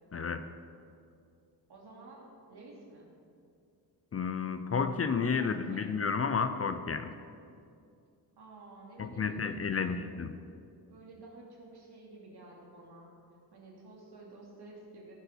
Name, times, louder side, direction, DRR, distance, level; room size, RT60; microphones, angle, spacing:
voice 1, 0.1-0.5 4.1-7.2 9.0-10.4, left 5 dB, 35° left, 9 dB, 0.5 m, -31 dB
voice 2, 1.7-3.1 5.3-5.9 8.4-10.1 10.9-13.1 13.5-15.1, right 2 dB, 70° right, -3 dB, 2.9 m, -51 dB
17.0 x 7.8 x 4.5 m, 2.4 s
wide cardioid pair, 130°, 41 cm